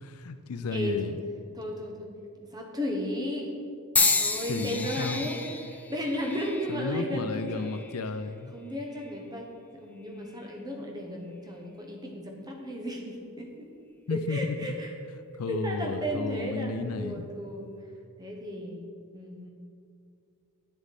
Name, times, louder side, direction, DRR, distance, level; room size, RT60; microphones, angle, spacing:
voice 1, 0.0-1.2 4.5-5.3 6.7-8.6 14.1-14.7 15.4-17.3, left 3 dB, 85° left, 10 dB, 0.5 m, -33 dB
voice 2, 0.7-1.1 1.5-2.1 2.5-3.5 4.0-5.4 5.7-7.7 8.5-9.5 9.7-13.7 14.1-14.9 15.5-17.7 18.2-18.9 19.1-19.5, equal, 20° right, 0 dB, 1.1 m, -34 dB
sound 1, 4.0-8.1 8.8-9.2 10.2-10.4, left 3 dB, 5° left, 0.4 m, -30 dB
9.3 x 8.0 x 4.2 m, 2.4 s
head